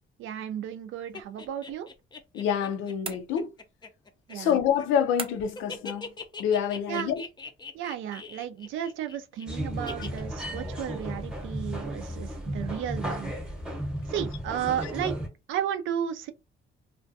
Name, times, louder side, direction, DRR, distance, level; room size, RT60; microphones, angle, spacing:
voice 1, 0.2-1.9 4.3-4.6 6.9-7.1 7.7-13.3 14.1-15.2 15.5-16.3, right 10 dB, 80° right, 0.4 m, -33 dB
sound 1, 1.1-5.1 5.4-9.5 9.9-10.2, left 4 dB, 20° left, 0.4 m, -42 dB
voice 2, 2.3-3.5 4.3-6.1 6.4-7.2 14.6-14.8, left 8 dB, 90° left, 0.5 m, -27 dB
sound 2, 3.0-3.8 5.2-5.7, right 4 dB, 30° right, 0.5 m, -39 dB
sound 3, 9.5-15.3, equal, 5° right, 0.8 m, -34 dB
2.5 x 2.2 x 2.6 m
cardioid pair, 90°, 20 cm